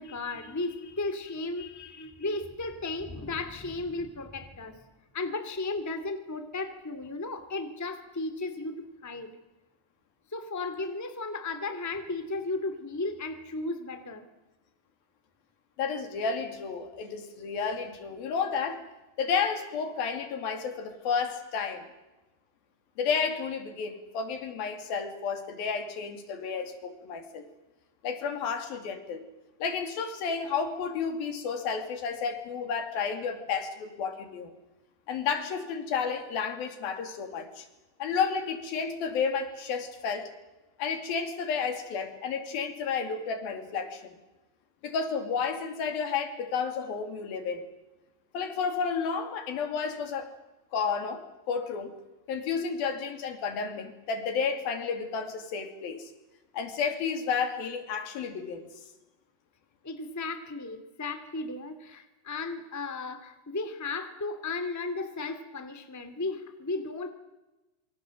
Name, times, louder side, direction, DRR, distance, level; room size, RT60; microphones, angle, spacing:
voice 1, 0.0-4.8 5.1-9.3 10.3-14.2 59.8-67.1, left 3 dB, 5° left, 8 dB, 1.6 m, -35 dB
voice 2, 15.8-18.8 19.2-21.8 23.0-27.5 28.0-29.2 29.6-34.5 35.1-37.7 38.0-40.3 40.8-44.0 44.8-47.6 48.3-50.3 50.7-51.9 52.3-56.1 56.5-58.7, left 6 dB, 75° left, 7 dB, 4.4 m, -31 dB
27.5 x 25.0 x 7.7 m, 1.1 s
omnidirectional pair, 4.3 m